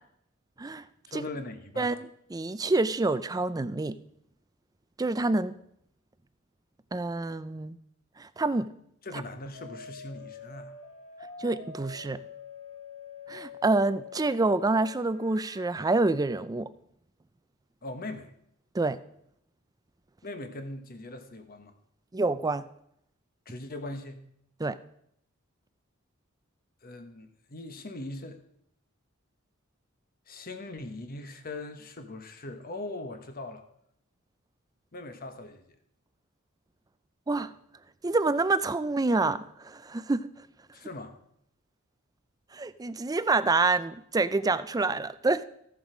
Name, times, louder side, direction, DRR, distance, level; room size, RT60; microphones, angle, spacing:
voice 1, 1.1-1.9 9.0-10.7 17.8-18.3 20.2-21.7 23.5-24.2 26.8-28.4 30.3-33.6 34.9-35.6 40.7-41.2, left 2 dB, 45° left, 1.2 m, -40 dB
voice 2, 2.3-4.0 5.0-5.5 6.9-7.8 8.2-8.7 11.4-12.2 13.3-16.7 18.7-19.0 22.1-22.7 24.6-24.8 37.3-37.5 38.0-40.3 42.5-45.4, right 3 dB, 15° right, 0.4 m, -27 dB
sound 1, 9.5-15.7, left 6 dB, 60° left, 1.5 m, -46 dB
14.5 x 7.1 x 5.0 m
head